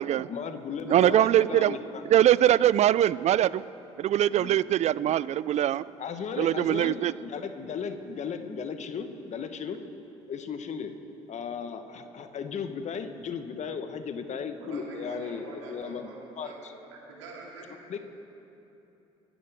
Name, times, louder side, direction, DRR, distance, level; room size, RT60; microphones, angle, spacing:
voice 1, 0.3-1.8 4.3-4.6 6.0-9.8 10.3-10.9 11.3-16.1 16.4-16.5 17.9-18.0, left 6 dB, 50° left, 8 dB, 1.3 m, -35 dB
voice 2, 0.9-1.8 2.1-3.6 4.0-5.8 6.4-7.1, right 12 dB, 45° right, 19 dB, 0.4 m, -22 dB
voice 3, 14.6-16.6 17.1-18.0, right 3 dB, 85° right, -3 dB, 2.7 m, -45 dB
24.5 x 11.5 x 3.6 m, 2.9 s
hypercardioid pair, 55°, 16 cm